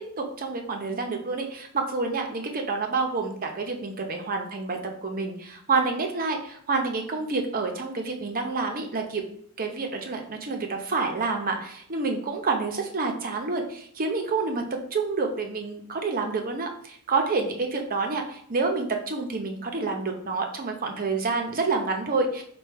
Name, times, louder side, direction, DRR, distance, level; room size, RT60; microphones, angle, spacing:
voice 1, 0.2-9.2 9.6-22.4, right 4 dB, 40° right, 3 dB, 0.7 m, -28 dB
4.9 x 2.3 x 4.5 m, 0.62 s
head